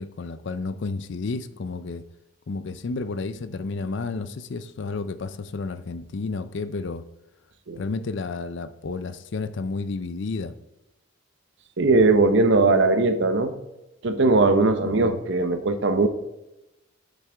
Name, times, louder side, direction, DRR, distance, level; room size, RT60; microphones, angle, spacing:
voice 1, 0.0-2.0 2.5-7.0 7.8-10.5 14.8-15.2, left 3 dB, 60° left, 13 dB, 0.5 m, -31 dB
voice 2, 11.8-13.5 14.0-16.1, right 3 dB, 60° right, 9 dB, 0.7 m, -19 dB
7.4 x 7.3 x 3.4 m, 0.96 s
head